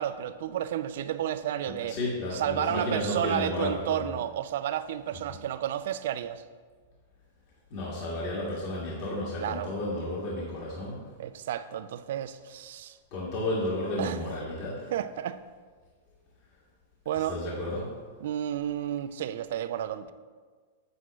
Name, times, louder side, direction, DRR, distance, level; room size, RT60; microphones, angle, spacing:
voice 1, 0.0-2.0 2.3-6.4 9.4-9.7 11.2-13.0 14.0-14.2 14.9-15.4 17.1-17.4 18.2-20.1, right 10 dB, 70° right, 0.4 m, -31 dB
voice 2, 1.8-4.0 7.7-11.0 13.1-14.9 17.3-17.9, left 1 dB, 50° left, 1.9 m, -32 dB
8.1 x 7.8 x 3.1 m
hypercardioid pair, 120°, 0 cm